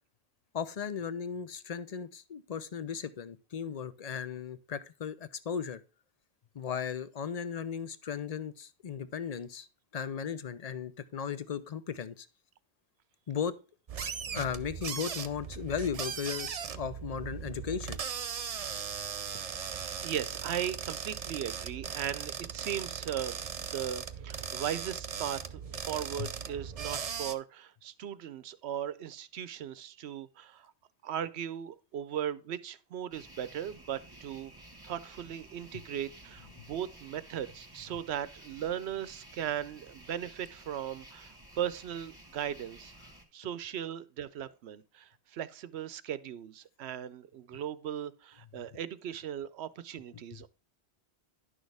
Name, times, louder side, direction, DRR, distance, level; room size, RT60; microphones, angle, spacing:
voice 1, 0.5-5.8 6.5-9.7 9.9-12.3 13.3-13.6 14.3-18.0 26.2-26.3 50.1-50.2, left 7 dB, 45° left, 0.6 m, -36 dB
sound 1, 13.9-27.3, right 7 dB, 45° right, 0.6 m, -38 dB
voice 2, 19.7-30.7 31.0-34.5 34.8-42.9 43.3-50.5, right 10 dB, 75° right, 0.9 m, -38 dB
sound 2, 33.1-43.3, right 1 dB, 20° right, 1.6 m, -53 dB
10.5 x 6.3 x 3.4 m
omnidirectional pair, 1.1 m